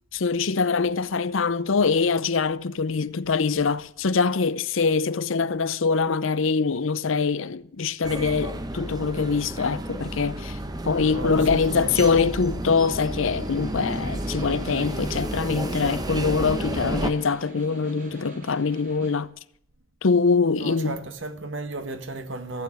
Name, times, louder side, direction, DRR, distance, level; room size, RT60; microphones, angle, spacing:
voice 1, 0.1-10.6 10.8-19.3 20.0-21.0, left 4 dB, 80° left, 0.7 m, -24 dB
sound 1, 8.0-17.1, right 1 dB, 20° right, 1.1 m, -31 dB
voice 2, 11.0-12.0 20.5-22.6, right 2 dB, 70° right, 1.7 m, -35 dB
Snare drum, 13.1-19.3, left 1 dB, 40° right, 2.9 m, -44 dB
15.0 x 9.2 x 8.9 m
head